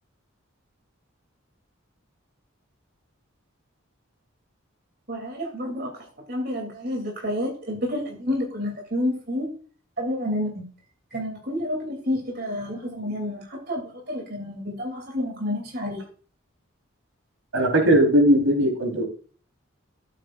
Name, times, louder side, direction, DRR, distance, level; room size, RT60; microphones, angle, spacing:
voice 1, 5.1-9.5 10.0-10.7 11.1-16.0, left 1 dB, 50° right, 0 dB, 2.9 m, -29 dB
voice 2, 17.5-19.0, right 1 dB, 85° right, 2 dB, 3.9 m, -19 dB
14.5 x 8.5 x 2.5 m, 0.41 s
head